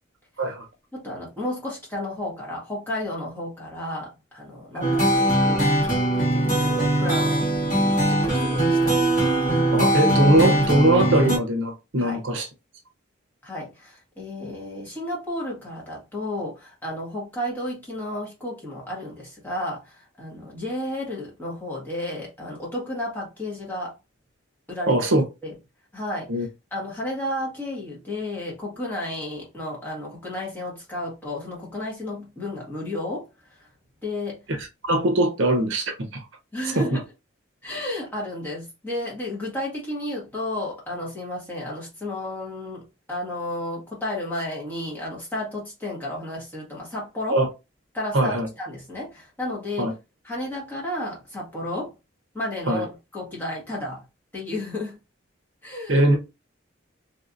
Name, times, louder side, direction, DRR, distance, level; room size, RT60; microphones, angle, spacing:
voice 1, 0.9-5.7 6.3-7.5 8.1-9.0 12.0-12.2 13.4-24.0 24.7-25.0 25.4-25.5 25.9-33.7 34.0-34.4 36.5-37.0 37.6-47.4 47.9-49.9 50.2-51.9 52.3-54.0 54.3-55.0 55.6-56.0, left 1 dB, 10° left, 1.4 m, -32 dB
sound 1, 4.8-11.4, right 1 dB, 40° left, 1.7 m, -21 dB
voice 2, 9.7-12.5 24.9-25.2 26.3-26.5 34.8-36.2 36.8-36.9 47.3-47.5 48.1-48.5 49.8-49.9 52.7-52.8 55.9-56.2, right 1 dB, 70° right, 0.7 m, -21 dB
3.2 x 2.7 x 2.5 m
head